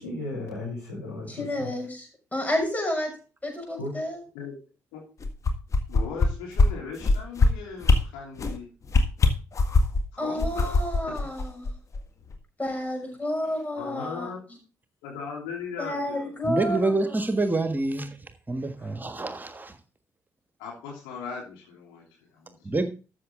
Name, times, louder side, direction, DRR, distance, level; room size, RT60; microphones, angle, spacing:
voice 1, 0.0-1.7 3.8-4.0 18.8-18.9, left 2 dB, 85° left, -5 dB, 4.1 m, -35 dB
voice 2, 1.3-3.1 3.4-4.2 10.2-11.7 12.6-14.3 15.8-17.2, left 1 dB, 20° left, 2 dB, 6.1 m, -30 dB
sound 1, 5.2-6.3 6.6-6.7 7.0-7.5 7.8-8.0 8.4-8.6 8.9-10.0 10.4-12.0 12.3-12.4, left 3 dB, 40° left, 1.6 m, -20 dB
voice 3, 5.9-8.7 10.1-10.8 11.1-11.2 13.8-14.4 15.0-16.4 16.7-16.8 20.6-22.6, left 5 dB, 65° left, -1 dB, 3.0 m, -38 dB
voice 4, 16.4-18.2 18.5-19.8 22.6-22.9, right 2 dB, 20° right, 8 dB, 1.5 m, -27 dB
13.0 x 7.3 x 3.7 m, 0.34 s
figure-of-eight pair, 40°, 8 cm